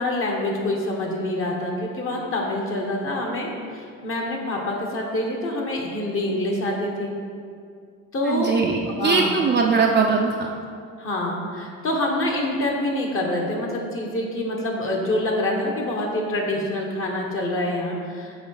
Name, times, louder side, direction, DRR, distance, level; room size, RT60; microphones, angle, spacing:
voice 1, 0.0-7.1 8.1-8.5 8.9-9.3 11.0-18.3, left 1 dB, 45° left, 0 dB, 1.2 m, -26 dB
voice 2, 8.2-10.5, right 4 dB, 35° right, 0 dB, 0.5 m, -21 dB
7.2 x 3.4 x 4.8 m, 2.2 s
cardioid pair, 95°, 30 cm